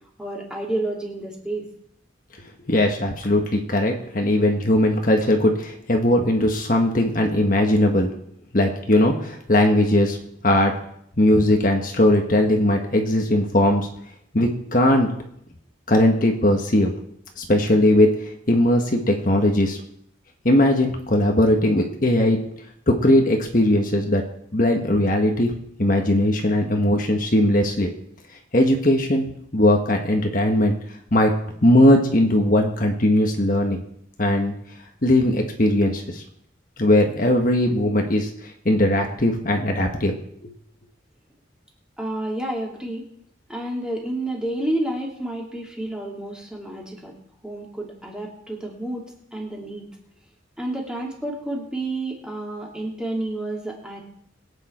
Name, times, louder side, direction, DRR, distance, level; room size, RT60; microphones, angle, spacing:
voice 1, 0.2-1.7 42.0-43.0 43.5-47.2 47.4-49.9 50.6-54.0, right 1 dB, 5° right, -2 dB, 2.7 m, -30 dB
voice 2, 2.7-8.1 8.5-10.2 10.4-10.7 11.2-13.9 14.3-15.1 15.9-16.9 17.4-19.8 20.4-22.4 22.9-24.2 24.5-25.5 25.8-27.9 28.5-30.7 31.1-31.3 31.6-33.8 34.2-34.5 35.0-36.2 36.8-40.1 40.4-40.5, left 1 dB, 45° left, 2 dB, 1.4 m, -19 dB
22.0 x 8.9 x 4.4 m, 0.70 s
head